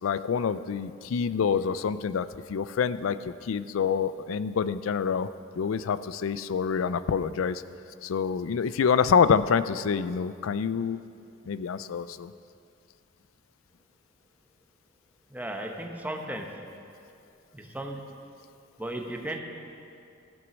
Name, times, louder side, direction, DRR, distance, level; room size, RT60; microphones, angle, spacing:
voice 1, 0.0-5.3 5.6-7.6 8.0-11.0 11.5-12.3, left 6 dB, 90° left, 15 dB, 0.4 m, -26 dB
voice 2, 15.3-16.5 17.5-18.0 18.8-19.4, right 1 dB, 10° right, 2 dB, 0.9 m, -35 dB
15.0 x 6.1 x 6.2 m, 2.5 s
head